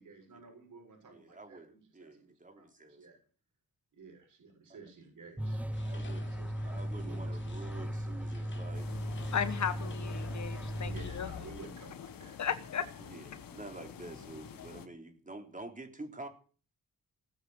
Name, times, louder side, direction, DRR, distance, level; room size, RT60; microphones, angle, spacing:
voice 1, 0.0-2.3 2.6-3.2 3.9-6.5 6.8-7.4 9.8-9.9 10.8-12.4, right 3 dB, 60° right, 3 dB, 7.3 m, -53 dB
voice 2, 1.1-3.1 5.4-6.3 6.6-9.0 13.0-16.3, right 2 dB, 20° right, 5 dB, 3.9 m, -48 dB
sound 1, 5.4-11.5, equal, 5° right, 0.9 m, -37 dB
sound 2, 5.7-11.7, left 5 dB, 30° left, 3.2 m, -48 dB
sound 3, 8.7-14.9, left 8 dB, 70° left, 2.0 m, -48 dB
voice 3, 9.3-11.3 12.4-12.9, left 8 dB, 50° left, 11 dB, 1.4 m, -35 dB
19.5 x 7.8 x 8.7 m, 0.41 s
cardioid pair, 110°, 35 cm